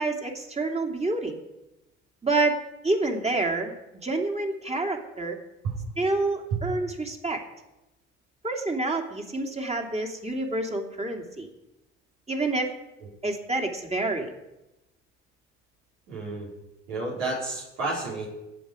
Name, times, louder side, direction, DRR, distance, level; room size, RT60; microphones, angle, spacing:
voice 1, 0.0-1.4 2.2-2.6 2.8-3.8 4.0-5.4 6.0-7.4 8.4-11.5 12.3-12.7 13.2-14.3, right 2 dB, 20° right, 2 dB, 2.8 m, -28 dB
voice 2, 16.1-16.5 16.9-18.3, right 3 dB, 75° right, -5 dB, 4.5 m, -30 dB
19.5 x 7.7 x 5.1 m, 0.96 s
hypercardioid pair, 60°, 36 cm